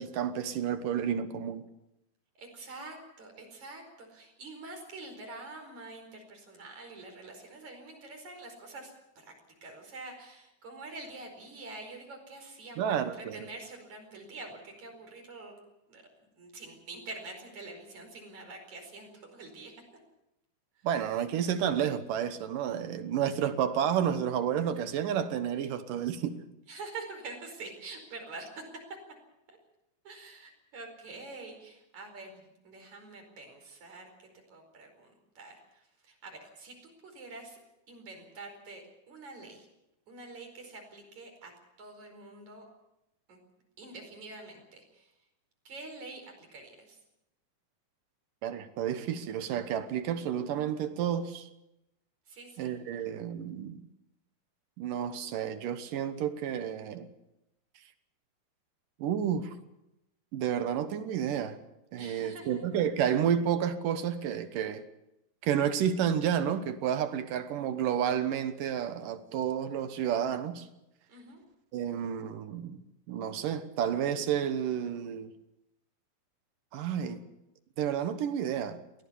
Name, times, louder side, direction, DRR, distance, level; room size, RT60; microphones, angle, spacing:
voice 1, 0.0-1.6 12.8-13.4 20.8-26.4 48.4-51.4 52.6-53.8 54.8-57.1 59.0-59.5 60.3-61.6 61.9-64.8 65.4-70.7 71.7-72.8 73.1-75.3 76.7-77.2 77.8-78.8, right 9 dB, 65° right, 2.6 m, -30 dB
voice 2, 2.4-9.3 9.6-15.5 15.9-16.0 16.4-19.7 20.8-20.9 26.7-28.6 29.5-29.6 30.0-37.6 37.9-39.7 40.1-41.5 41.8-42.7 43.3-43.4 43.8-45.1 45.7-47.0 52.3-53.0 62.0-62.6 71.1-71.4, right 3 dB, 50° right, 6.0 m, -46 dB
23.0 x 17.5 x 7.0 m
omnidirectional pair, 4.4 m